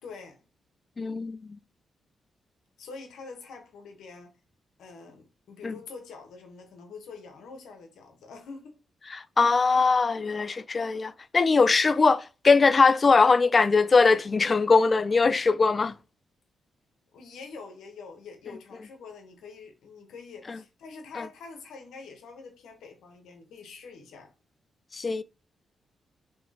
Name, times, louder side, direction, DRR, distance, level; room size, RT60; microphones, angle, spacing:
voice 1, 0.0-0.4 2.8-4.4 4.8-8.7 17.1-24.3, left 4 dB, 80° left, 0.9 m, -45 dB
voice 2, 1.0-1.4 5.6-5.7 9.4-15.9 20.5-20.6 21.2-21.3 24.9-25.2, left 4 dB, 45° left, 0.3 m, -21 dB
3.1 x 3.0 x 3.6 m
supercardioid pair, 45°, 0 cm